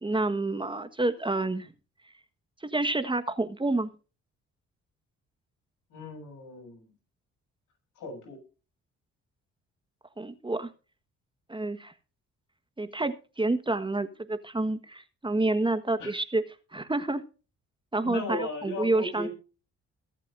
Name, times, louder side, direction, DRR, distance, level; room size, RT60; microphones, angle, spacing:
voice 1, 0.0-1.7 2.6-3.9 10.2-10.7 11.5-11.9 12.8-16.4 16.7-17.2 17.9-19.3, right 2 dB, 15° right, 10 dB, 1.4 m, -28 dB
voice 2, 5.9-6.9 8.0-8.4 16.0-16.1 18.0-19.3, left 2 dB, 80° left, 4 dB, 8.0 m, -37 dB
22.5 x 8.9 x 2.6 m, 0.34 s
cardioid pair, 90°, 30 cm